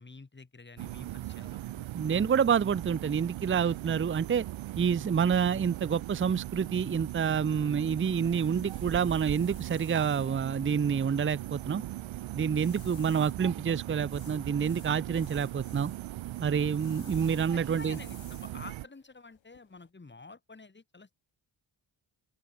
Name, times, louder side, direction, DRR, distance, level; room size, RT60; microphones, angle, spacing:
voice 1, 0.0-1.9 17.5-21.1, left 3 dB, 25° left, 7.7 m, -50 dB
sound 1, 0.8-18.9, right 15 dB, 80° right, 0.8 m, -39 dB
voice 2, 1.9-4.4 4.8-11.8 12.3-15.9 16.4-18.0, right 7 dB, 25° right, 0.7 m, -28 dB
sound 2, 6.9-19.9, left 9 dB, 75° left, 7.3 m, -59 dB
wide cardioid pair, 130°, 46 cm